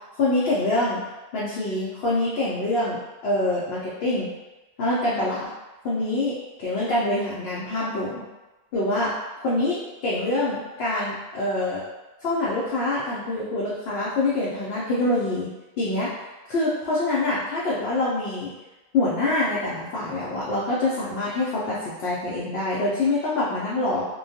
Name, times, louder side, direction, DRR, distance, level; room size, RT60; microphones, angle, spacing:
voice 1, 0.1-1.0 1.3-4.3 4.8-5.5 5.8-8.2 8.7-9.2 9.4-11.8 12.2-15.5 15.8-16.1 16.5-18.5 18.9-24.1, left 2 dB, 75° left, -7 dB, 0.8 m, -25 dB
2.2 x 2.2 x 2.6 m, 1.1 s
omnidirectional pair, 1.0 m